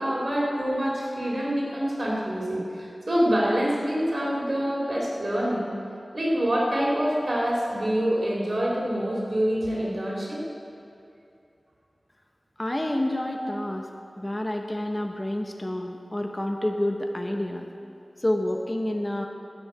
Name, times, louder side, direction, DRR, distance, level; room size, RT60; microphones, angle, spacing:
voice 1, 0.0-5.7 6.1-10.4, equal, 55° right, -4 dB, 3.7 m, -26 dB
voice 2, 12.6-13.9 14.2-17.7 18.2-19.3, left 1 dB, 25° left, 3 dB, 1.0 m, -28 dB
15.5 x 6.3 x 7.8 m, 2.6 s
wide cardioid pair, 55°, 0 cm